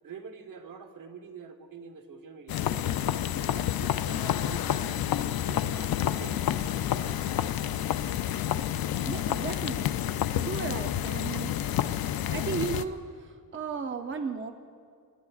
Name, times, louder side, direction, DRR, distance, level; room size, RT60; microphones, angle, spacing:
voice 1, 0.0-2.7 3.3-5.1 5.5-6.5 6.9-7.3, right 6 dB, 65° right, 6 dB, 1.0 m, -46 dB
sound 1, 2.5-12.8, left 11 dB, 85° left, 0.5 m, -29 dB
voice 2, 9.0-10.0 10.4-11.5 12.3-14.5, right 5 dB, 35° right, 6 dB, 0.6 m, -35 dB
28.5 x 12.5 x 2.4 m, 2.2 s
wide cardioid pair, 140°, 35 cm